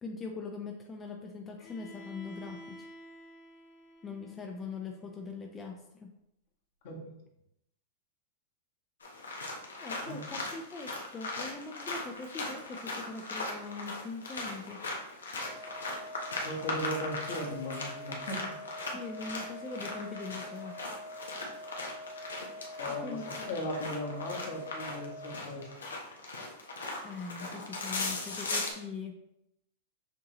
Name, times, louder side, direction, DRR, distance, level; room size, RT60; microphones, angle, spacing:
voice 1, 0.0-2.9 4.0-6.2 9.8-14.8 18.9-20.8 22.9-23.5 27.0-29.2, left 4 dB, 20° left, 2 dB, 0.5 m, -42 dB
Bowed string instrument, 1.6-5.5, equal, 40° left, 1.1 m, -51 dB
voice 2, 6.8-7.2 10.0-10.2 15.5-15.6 16.4-18.6 22.8-25.7, left 1 dB, 65° left, -2 dB, 1.4 m, -37 dB
sound 1, 9.0-28.7, left 2 dB, 90° left, 0.9 m, -39 dB
sound 2, 15.4-25.4, left 1 dB, 30° right, 1.3 m, -46 dB
6.5 x 2.7 x 2.9 m, 0.84 s
hypercardioid pair, 110°, 0 cm